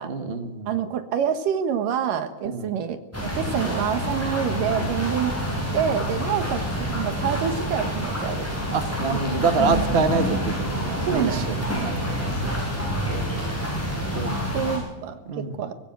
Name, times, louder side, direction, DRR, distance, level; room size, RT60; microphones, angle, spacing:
voice 1, 0.0-0.7 2.4-2.7 4.8-4.9 8.7-12.4 13.1-13.6 14.1-14.4 15.3-15.5, right 4 dB, 50° right, 7 dB, 0.7 m, -27 dB
voice 2, 0.7-5.5 5.7-8.6 11.1-12.1 14.5-15.2 15.6-15.7, right 8 dB, 65° right, 9 dB, 2.9 m, -27 dB
sound 1, 3.1-14.8, equal, 5° left, 7.3 m, -27 dB
24.5 x 16.0 x 7.9 m, 1.1 s
omnidirectional pair, 4.3 m